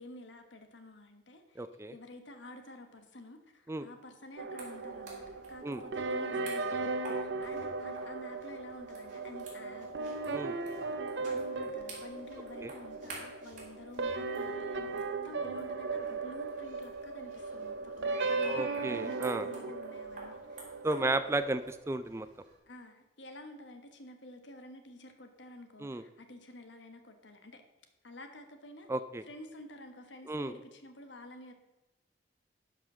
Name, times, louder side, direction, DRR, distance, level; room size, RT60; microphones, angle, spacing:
voice 1, 0.0-10.5 11.2-21.2 22.7-27.6 28.0-28.9 29.3-31.5, left 1 dB, 85° left, 6 dB, 1.4 m, -50 dB
voice 2, 1.6-1.9 3.7-3.8 5.6-5.8 10.3-10.5 12.6-12.7 18.4-19.5 20.8-22.3 25.8-26.0 28.9-29.2 30.3-30.5, right 2 dB, 15° right, 12 dB, 0.3 m, -33 dB
sound 1, 4.4-21.7, right 3 dB, 80° right, 0.8 m, -37 dB
sound 2, 4.6-22.5, right 2 dB, 45° right, 3.6 m, -52 dB
11.5 x 5.7 x 6.1 m, 1.1 s
head